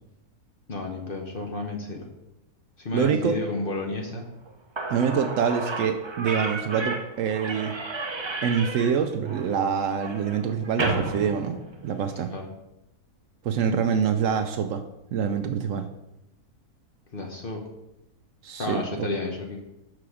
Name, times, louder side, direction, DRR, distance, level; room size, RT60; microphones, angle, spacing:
voice 1, 0.7-2.1 2.8-4.3 12.3-12.5 17.1-17.6 18.6-19.6, left 2 dB, 45° left, 1 dB, 0.9 m, -32 dB
voice 2, 2.9-3.4 4.9-7.8 8.4-11.6 11.8-12.3 13.4-14.8 15.1-15.9 18.4-19.1, right 7 dB, 70° right, 7 dB, 0.8 m, -25 dB
Slam / Squeak, 4.5-4.6 4.8-12.2, right 3 dB, 45° right, 0.3 m, -32 dB
6.2 x 5.7 x 4.9 m, 0.92 s
omnidirectional pair, 1.6 m